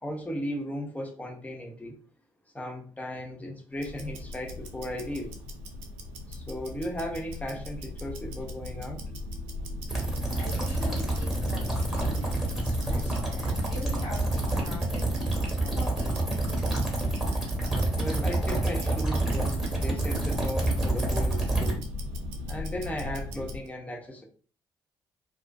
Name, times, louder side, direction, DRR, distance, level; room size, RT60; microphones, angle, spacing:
voice 1, 0.0-2.0 2.5-5.3 6.3-9.1 17.9-21.8 22.5-24.2, equal, 15° left, 0 dB, 0.8 m, -36 dB
Tick-tock, 3.7-23.7, left 2 dB, 80° right, 0.4 m, -38 dB
sound 1, 9.9-21.7, right 2 dB, 5° right, 1.3 m, -28 dB
voice 2, 10.4-15.1 15.6-16.3, left 2 dB, 55° left, -5 dB, 1.4 m, -43 dB
2.4 x 2.3 x 2.3 m, 0.41 s
hypercardioid pair, 45°, 11 cm